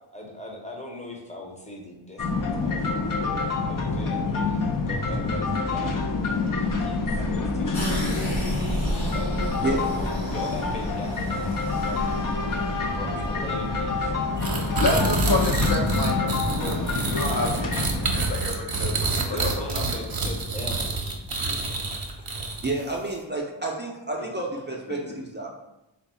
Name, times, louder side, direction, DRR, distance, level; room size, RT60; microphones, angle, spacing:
voice 1, 0.1-6.0 6.5-8.6 9.1-12.2 12.8-14.1 19.3-21.0, left 2 dB, 15° left, 0 dB, 0.7 m, -40 dB
sound 1, 2.2-18.3, left 3 dB, 45° left, 0.5 m, -27 dB
sound 2, 7.7-15.1, equal, 85° left, 1.1 m, -32 dB
sound 3, 14.4-22.9, right 3 dB, 50° right, 0.8 m, -27 dB
voice 2, 14.8-19.4 19.7-19.8 25.0-25.1, left 2 dB, 60° left, 0 dB, 0.9 m, -29 dB
voice 3, 22.6-25.5, right 2 dB, 25° right, -2 dB, 0.5 m, -30 dB
3.5 x 2.3 x 4.2 m, 0.93 s
wide cardioid pair, 80°, 47 cm